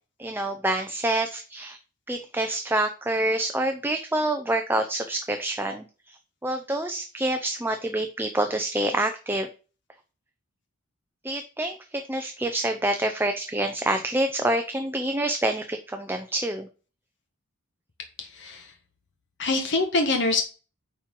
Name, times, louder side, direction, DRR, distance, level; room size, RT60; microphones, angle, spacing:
voice 1, 0.2-1.8 2.1-6.2 6.4-9.5 11.2-16.7, right 1 dB, 10° right, 6 dB, 0.6 m, -27 dB
voice 2, 18.2-18.7 19.4-20.4, left 3 dB, 55° left, 3 dB, 1.5 m, -25 dB
9.1 x 4.6 x 3.8 m, 0.34 s
head